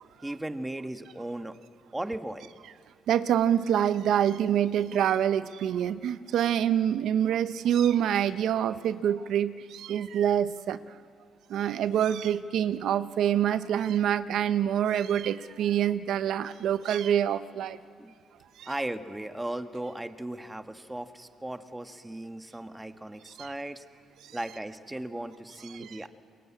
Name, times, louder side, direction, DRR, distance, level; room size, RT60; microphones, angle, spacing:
voice 1, 0.2-1.5 1.9-2.5 18.0-18.1 18.6-23.8 24.3-26.1, right 1 dB, 10° right, 8 dB, 1.4 m, -37 dB
voice 2, 3.1-10.8 11.5-17.8 18.6-18.7 23.4-23.5 25.7-25.9, right 9 dB, 75° right, 13 dB, 0.9 m, -26 dB
28.0 x 22.5 x 8.7 m, 2.1 s
cardioid pair, 90°, 0 cm